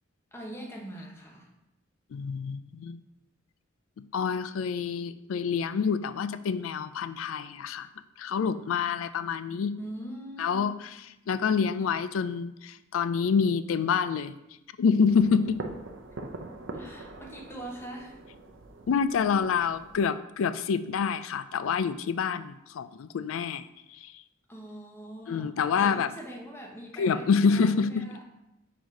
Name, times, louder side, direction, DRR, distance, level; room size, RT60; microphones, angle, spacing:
voice 1, 0.3-1.5 9.2-9.3 9.8-10.7 16.7-18.2 24.5-28.2, right 1 dB, 10° left, 0 dB, 0.9 m, -42 dB
voice 2, 2.1-3.0 4.1-7.9 8.2-9.8 10.4-10.7 11.3-14.4 14.8-15.6 18.9-23.7 24.0-24.1 25.3-26.1 27.0-28.1, left 6 dB, 85° left, 13 dB, 0.4 m, -27 dB
sound 1, 15.1-20.0, right 2 dB, 65° right, 0.6 m, -43 dB
4.7 x 4.0 x 5.2 m, 0.89 s
head